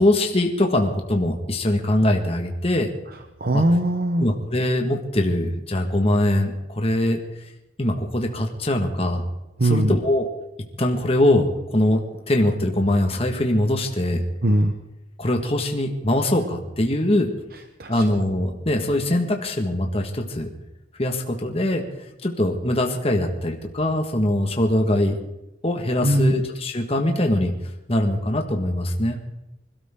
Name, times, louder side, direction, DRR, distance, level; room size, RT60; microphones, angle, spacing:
voice 1, 0.0-2.9 3.5-3.6 4.2-7.2 7.8-9.2 9.6-10.3 10.8-12.0 12.3-14.2 15.2-17.3 17.9-20.5 21.0-21.8 22.2-25.1 25.6-27.5 27.9-29.2, left 1 dB, 35° left, 3 dB, 1.7 m, -22 dB
voice 2, 3.4-4.3 9.6-10.0 14.4-14.7 17.8-18.0 26.0-26.4, right 1 dB, 55° right, 6 dB, 1.0 m, -20 dB
25.5 x 13.0 x 3.8 m, 0.94 s
head